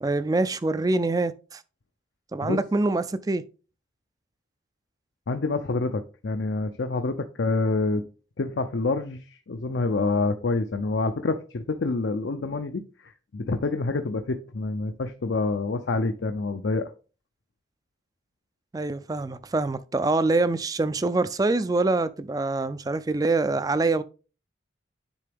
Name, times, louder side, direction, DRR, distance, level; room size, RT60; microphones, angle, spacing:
voice 1, 0.0-1.6 2.3-3.4 18.7-24.0, right 2 dB, 20° right, 0.3 m, -25 dB
voice 2, 5.3-8.0 8.4-16.9, left 3 dB, 65° left, 0.5 m, -27 dB
9.9 x 3.8 x 3.5 m
head